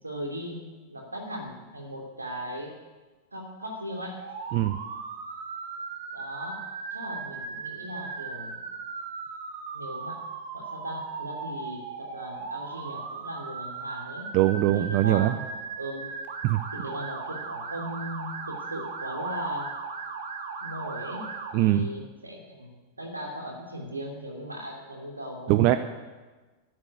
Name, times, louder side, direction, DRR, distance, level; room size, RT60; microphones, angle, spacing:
voice 1, 0.0-2.8 3.3-4.2 6.1-6.7 6.9-8.6 9.7-10.3 10.5-14.3 14.7-16.1 16.7-19.7 20.6-25.8, equal, 80° right, 1 dB, 2.8 m, -38 dB
Motor vehicle (road) / Siren, 4.2-21.5, right 5 dB, 60° right, 1.8 m, -37 dB
voice 2, 14.3-15.3 16.4-16.6 21.5-21.9 25.5-25.8, right 14 dB, 45° right, 11 dB, 0.6 m, -21 dB
13.5 x 7.8 x 9.6 m, 1.3 s
figure-of-eight pair, 90°, 0 cm